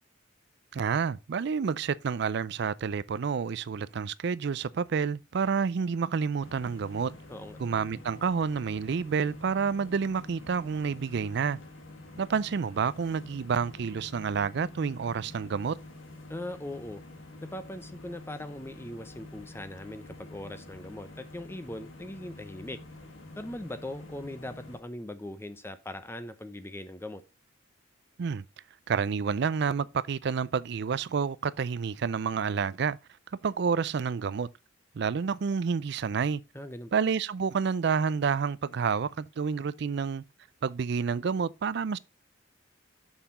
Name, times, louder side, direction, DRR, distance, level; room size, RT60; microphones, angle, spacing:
voice 1, 0.7-7.2 7.6-11.6 12.2-15.8 28.2-28.4 28.9-33.0 33.4-34.5 34.9-36.4 36.9-40.2 40.6-42.0, right 6 dB, 60° right, 0.4 m, -29 dB
sound 1, 6.4-24.8, left 2 dB, 80° left, 1.8 m, -48 dB
voice 2, 16.3-17.0 17.4-22.8 23.4-27.2 36.5-36.9, left 1 dB, 10° left, 0.6 m, -40 dB
7.0 x 5.5 x 4.0 m
head